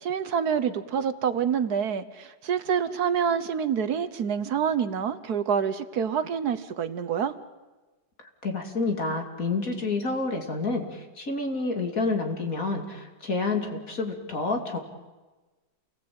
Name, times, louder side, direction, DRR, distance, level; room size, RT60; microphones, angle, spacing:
voice 1, 0.0-7.3, right 7 dB, 65° right, 12 dB, 1.5 m, -27 dB
voice 2, 8.4-14.8, left 3 dB, 50° left, 3 dB, 3.3 m, -29 dB
28.5 x 19.5 x 8.7 m, 1.2 s
omnidirectional pair, 1.8 m